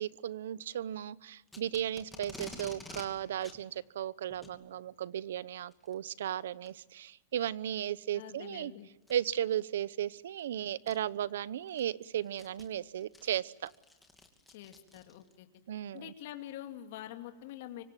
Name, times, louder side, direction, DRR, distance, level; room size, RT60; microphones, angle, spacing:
voice 1, 0.0-8.7 9.1-13.7 15.7-16.1, right 10 dB, 90° right, 19 dB, 0.9 m, -35 dB
Packing tape duct tape, 1.5-3.1 3.4-3.6 4.3-4.6 5.7-5.9 6.6-6.7 7.4-7.5 9.0-9.3 10.4-10.5 10.9-11.0 11.5-15.4, left 2 dB, 5° left, 2.8 m, -50 dB
voice 2, 8.1-8.9 14.5-15.5 15.9-17.8, left 12 dB, 60° left, 6 dB, 2.5 m, -45 dB
25.5 x 24.5 x 9.1 m, 0.98 s
supercardioid pair, 165°, 0 cm